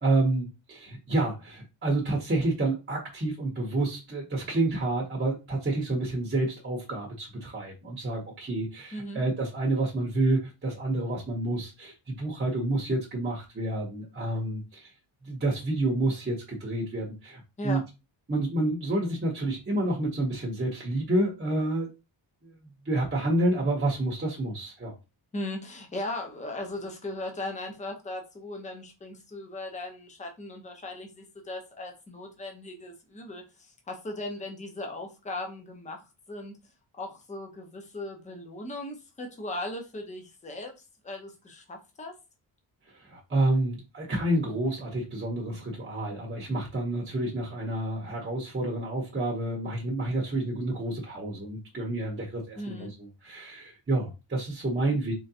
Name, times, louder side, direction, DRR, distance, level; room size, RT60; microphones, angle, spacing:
voice 1, 0.0-14.9 15.2-17.8 18.3-21.9 22.4-22.6 22.8-24.9 42.9-55.1, right 2 dB, 25° right, 0.8 m, -29 dB
voice 2, 8.9-9.2 17.6-17.8 25.3-36.6 37.0-40.7 41.0-42.1 52.6-52.9, left 1 dB, 15° left, 0.7 m, -38 dB
3.8 x 3.1 x 2.7 m
wide cardioid pair, 170°, 48 cm